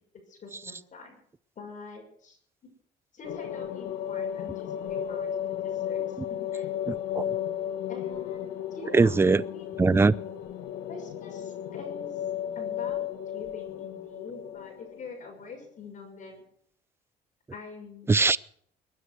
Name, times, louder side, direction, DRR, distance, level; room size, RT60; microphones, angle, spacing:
voice 1, 0.3-1.2 1.6-2.4 2.6-2.7 3.1-6.7 7.9-9.6 10.9-12.2 12.5-13.1 13.3-16.4 17.5-18.1, left 4 dB, 50° left, 6.3 m, -45 dB
sound 1, 3.2-15.5, left 10 dB, 90° left, 1.5 m, -34 dB
voice 2, 6.9-7.4 8.9-9.4 9.8-10.1 18.1-18.4, right 3 dB, 15° right, 0.6 m, -21 dB
22.0 x 10.0 x 6.4 m
cardioid pair, 110°, 17 cm